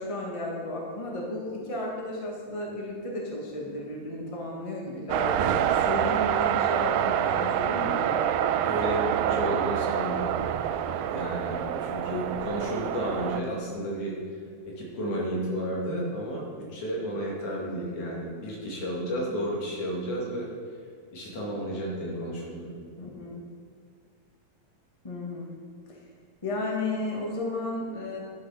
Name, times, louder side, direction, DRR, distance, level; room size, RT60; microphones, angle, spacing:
voice 1, 0.0-8.2 23.0-23.4 25.0-25.5 25.9-26.0 26.4-28.2, left 2 dB, 40° left, -2 dB, 0.4 m, -33 dB
sound 1, 5.1-13.4, right 10 dB, 85° right, 2.2 m, -27 dB
voice 2, 8.6-10.6 11.1-14.1 14.6-20.5 21.1-22.7, equal, 60° left, -3 dB, 3.5 m, -32 dB
11.0 x 6.8 x 5.6 m, 2.1 s
omnidirectional pair, 3.9 m